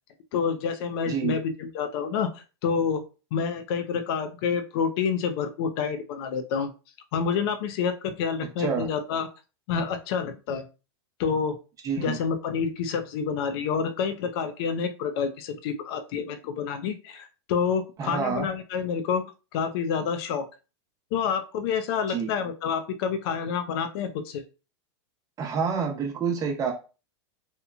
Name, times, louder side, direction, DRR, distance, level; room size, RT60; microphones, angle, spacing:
voice 1, 0.3-3.0 3.3-6.7 7.1-9.3 9.7-10.7 11.2-11.6 12.0-19.2 19.5-20.5 21.1-24.4, left 6 dB, 60° left, 8 dB, 0.4 m, -28 dB
voice 2, 11.8-12.2 18.0-18.5 22.1-22.3 25.4-26.7, right 6 dB, 25° right, 2 dB, 0.8 m, -28 dB
2.9 x 2.1 x 2.4 m, 0.32 s
supercardioid pair, 130°, 15 cm